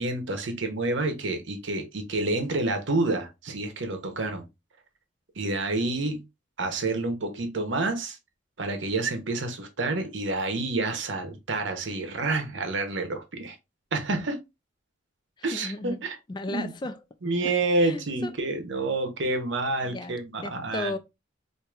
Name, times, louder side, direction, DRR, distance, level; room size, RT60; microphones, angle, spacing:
voice 1, 0.0-4.5 5.4-6.2 6.6-8.2 8.6-13.6 13.9-14.4 15.4-16.1 16.5-16.7 17.2-20.9, right 2 dB, 65° right, 0.8 m, -28 dB
voice 2, 15.5-17.0 17.4-17.5 17.8-18.3 19.8-20.2 20.4-21.0, left 2 dB, 20° left, 0.3 m, -35 dB
4.6 x 2.6 x 2.3 m
head